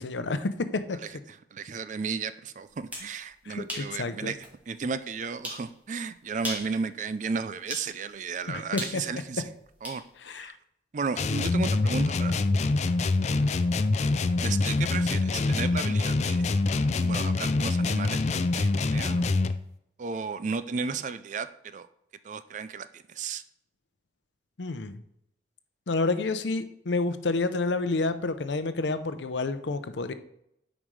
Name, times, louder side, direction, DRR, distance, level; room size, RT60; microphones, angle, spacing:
voice 1, 0.0-1.0 3.5-4.3 8.5-9.0 10.2-10.5 24.6-25.0 25.9-30.1, left 3 dB, 80° left, 0.6 m, -29 dB
voice 2, 1.0-9.5 9.8-10.0 10.3-10.6 10.9-12.3 14.4-16.5 17.0-19.2 20.0-21.9 22.2-23.4, right 5 dB, 45° right, 0.4 m, -34 dB
sound 1, 2.7-3.1 3.7-3.9 4.4-4.5 5.4-5.7 6.3-6.7 7.7-7.9 8.8-10.0, equal, 10° right, 1.7 m, -36 dB
sound 2, 11.2-19.6, left 3 dB, 40° left, 0.4 m, -25 dB
8.8 x 5.1 x 3.2 m
head